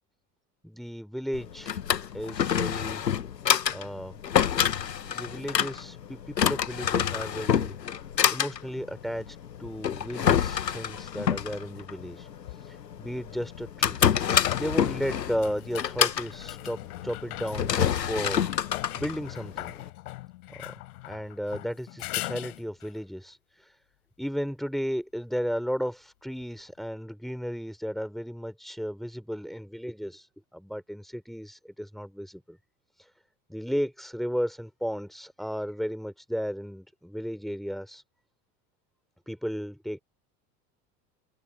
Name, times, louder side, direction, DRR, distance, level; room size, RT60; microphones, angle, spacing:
voice 1, 0.6-1.8 2.1-3.0 3.7-4.1 5.1-7.8 8.3-12.3 13.0-14.0 14.6-18.4 19.0-19.7 20.6-20.7 21.0-23.4 24.2-30.2 30.5-32.6 33.5-38.0 39.3-40.0, equal, ahead, 4.8 m, -34 dB
Drawer open or close, 1.3-19.9, left 8 dB, 80° left, 1.4 m, -28 dB
sound 1, 12.5-12.6 13.9-23.0 26.4-26.5, left 19 dB, 60° left, 4.0 m, -39 dB
figure-of-eight pair, 75°, 49 cm